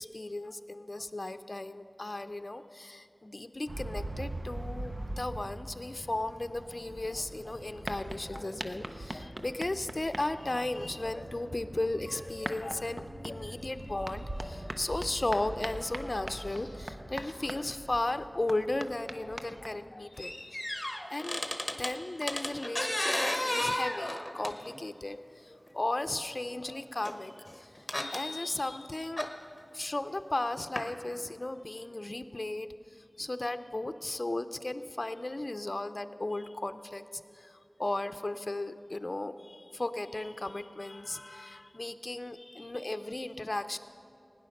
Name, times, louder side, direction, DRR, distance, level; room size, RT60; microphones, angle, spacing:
voice 1, 0.0-21.4 21.8-29.3 29.7-32.7 33.2-43.8, left 2 dB, 50° left, 10 dB, 0.5 m, -35 dB
sound 1, 3.7-19.8, right 1 dB, 60° right, 0.7 m, -42 dB
sound 2, 6.5-16.8, equal, 30° right, 2.3 m, -52 dB
sound 3, 20.2-21.9 22.2-24.8 25.7-25.8 27.0-27.1 27.5-28.2 29.2-29.3 30.8-30.9, left 1 dB, 20° left, 1.1 m, -33 dB
17.5 x 9.8 x 6.5 m, 2.6 s
wide cardioid pair, 55°, 0 cm